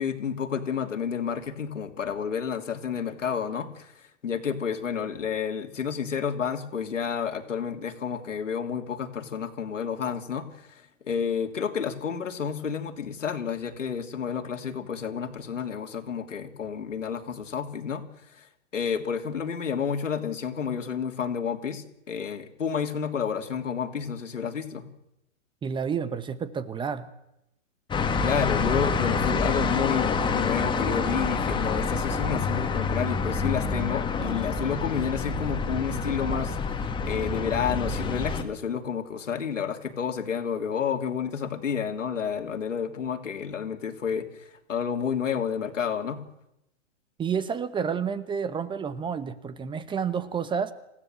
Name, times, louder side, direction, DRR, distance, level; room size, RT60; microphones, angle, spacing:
voice 1, 0.0-3.9 4.2-18.0 18.3-18.5 18.7-24.9 28.2-46.2, left 7 dB, 85° left, 6 dB, 3.1 m, -30 dB
voice 2, 25.6-27.1 47.2-50.7, right 6 dB, 15° right, 15 dB, 1.0 m, -30 dB
sound 1, 27.9-38.4, left 4 dB, 15° left, 1.9 m, -27 dB
27.5 x 16.0 x 7.8 m, 0.86 s
hypercardioid pair, 130°, 37 cm